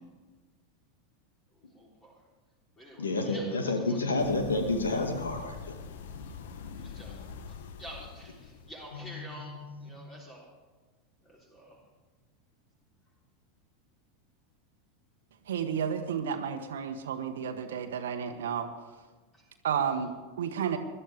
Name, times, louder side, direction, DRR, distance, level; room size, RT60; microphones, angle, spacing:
voice 1, 1.5-2.2 2.8-4.0 6.5-10.5 11.2-11.8 19.3-19.5, equal, 20° left, -3 dB, 3.7 m, -49 dB
voice 2, 3.0-5.8 8.9-9.9, left 2 dB, 75° left, 4 dB, 2.0 m, -30 dB
sound 1, 4.2-9.1, left 6 dB, 60° left, 1.0 m, -44 dB
voice 3, 15.5-18.7 19.6-20.8, right 7 dB, 65° right, 6 dB, 1.1 m, -32 dB
21.0 x 12.5 x 3.5 m, 1.3 s
figure-of-eight pair, 85°, 0 cm